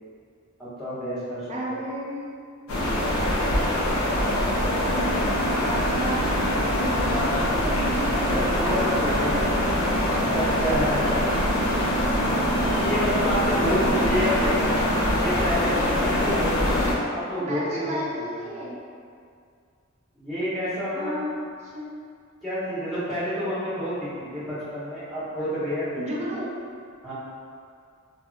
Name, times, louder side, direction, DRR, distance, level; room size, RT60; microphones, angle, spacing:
voice 1, 0.6-1.5 8.3-9.4 10.1-11.2 12.6-18.1 18.4-18.6 20.1-21.2 22.4-26.3 27.0-27.1, equal, ahead, -14 dB, 1.2 m, -29 dB
voice 2, 1.5-2.3 5.5-6.3 6.8-7.3 8.5-9.4 10.7-11.6 17.4-18.8 20.9-21.3 21.6-21.9 26.0-26.5, equal, 30° right, -5 dB, 0.5 m, -33 dB
sound 1, 2.7-16.9, equal, 70° left, 0.6 m, -23 dB
2.8 x 2.4 x 2.3 m, 2.3 s
head